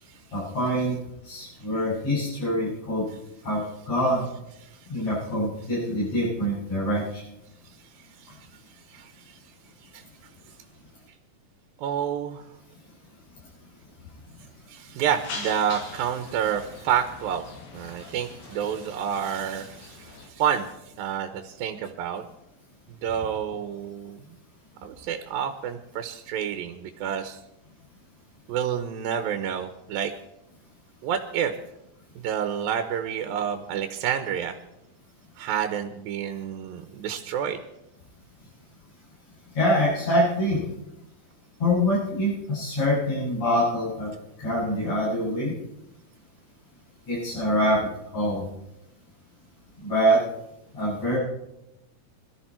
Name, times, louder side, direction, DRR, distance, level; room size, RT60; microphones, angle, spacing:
voice 1, 0.3-1.0 1.2-3.1 3.4-4.2 4.9-7.2 39.5-40.6 41.6-44.1 44.4-45.5 47.1-47.8 48.1-48.4 49.8-50.2 50.7-51.2, equal, 45° left, -11 dB, 8.4 m, -25 dB
voice 2, 11.8-12.4 14.7-17.4 17.7-20.7 21.0-22.2 23.0-24.2 24.8-27.4 28.5-30.1 31.0-31.5 32.2-34.6 35.4-37.6, right 8 dB, 90° right, 7 dB, 2.7 m, -29 dB
sound 1, 15.0-20.3, left 3 dB, 80° left, 4.1 m, -42 dB
21.5 x 13.0 x 4.4 m, 0.85 s
omnidirectional pair, 4.0 m